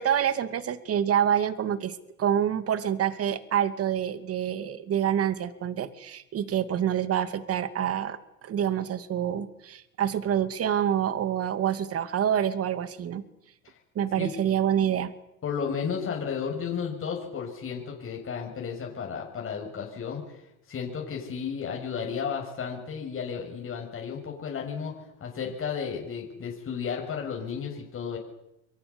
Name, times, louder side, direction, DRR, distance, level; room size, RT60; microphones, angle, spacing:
voice 1, 0.0-13.2 13.9-15.1, right 9 dB, 35° right, 12 dB, 2.5 m, -27 dB
voice 2, 15.4-20.4 20.7-28.2, left 6 dB, 30° left, 0 dB, 6.7 m, -33 dB
29.0 x 23.5 x 7.2 m, 0.87 s
hypercardioid pair, 100°, 41 cm